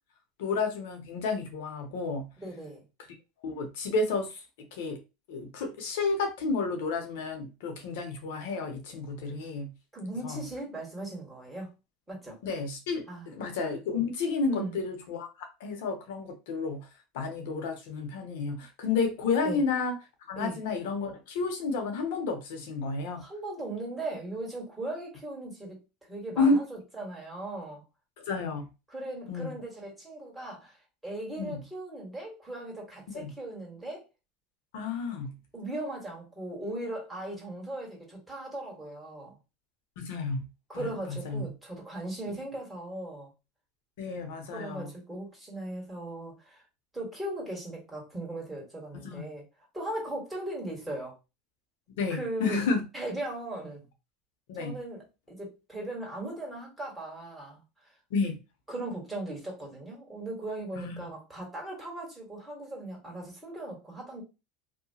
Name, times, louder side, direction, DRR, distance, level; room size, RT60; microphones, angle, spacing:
voice 1, 0.4-2.3 3.4-4.4 4.7-5.0 5.3-9.7 10.2-10.4 12.4-16.9 17.1-19.9 20.3-23.2 26.4-26.6 28.2-28.7 29.3-29.5 31.4-31.6 33.1-33.3 34.7-35.3 40.0-40.4 41.1-41.5 42.3-42.4 44.0-44.9 49.0-49.2 52.0-52.8 54.5-54.8 58.1-58.4 60.8-61.1, left 4 dB, 75° left, 0.8 m, -31 dB
voice 2, 2.4-2.8 9.9-11.7 12.1-12.4 13.1-13.3 14.5-14.8 19.4-19.6 20.3-20.6 23.2-25.8 26.1-27.8 28.9-30.8 31.0-34.0 35.5-39.4 40.7-43.3 44.4-46.6 46.9-49.4 49.7-51.1 52.1-52.6 52.9-53.9 54.6-57.9 58.7-64.2, right 1 dB, 10° right, 1.6 m, -38 dB
2.8 x 2.2 x 2.8 m
supercardioid pair, 105°, 0 cm